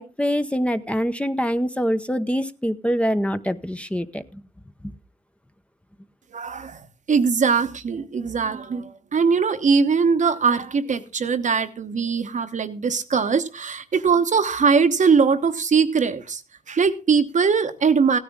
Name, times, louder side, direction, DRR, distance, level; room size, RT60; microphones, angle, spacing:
voice 1, 0.0-4.4, equal, 10° left, 0.8 m, -24 dB
voice 2, 6.3-6.8 7.1-16.4 16.7-18.2, right 5 dB, 60° right, 1.0 m, -21 dB
15.5 x 9.8 x 3.6 m
cardioid pair, 50°, 15 cm